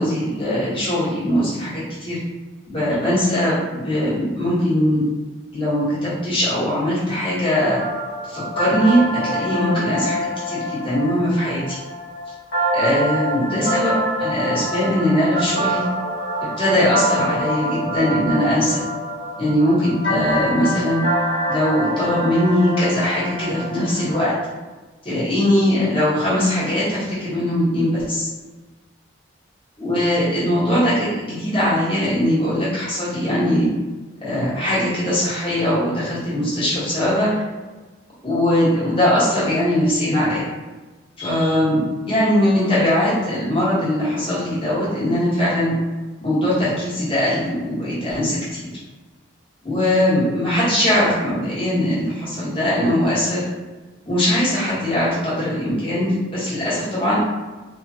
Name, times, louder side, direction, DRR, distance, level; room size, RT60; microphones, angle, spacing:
voice 1, 0.0-2.2 2.7-5.0 5.5-7.8 8.2-11.8 12.7-15.8 16.6-18.8 19.4-21.0 21.5-24.3 25.0-28.3 29.8-33.7 34.2-37.3 38.2-40.5 41.2-45.7 46.2-48.7 49.6-53.4 54.1-57.2, left 1 dB, 30° left, -10 dB, 1.2 m, -20 dB
sound 1, 7.8-24.1, equal, 60° left, 0.9 m, -25 dB
3.2 x 2.2 x 2.7 m, 1.2 s
head